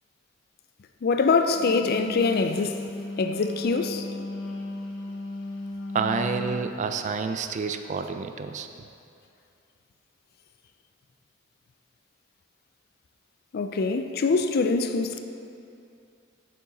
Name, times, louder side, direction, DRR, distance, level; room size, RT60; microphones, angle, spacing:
voice 1, 1.0-2.8 3.2-4.0 13.5-15.2, left 4 dB, 50° left, 0.4 m, -24 dB
Wind instrument woodwind instrument, 1.4-6.7, left 2 dB, 85° left, 1.0 m, -35 dB
voice 2, 5.9-8.7, right 5 dB, 40° right, 0.3 m, -29 dB
6.8 x 6.2 x 4.0 m
head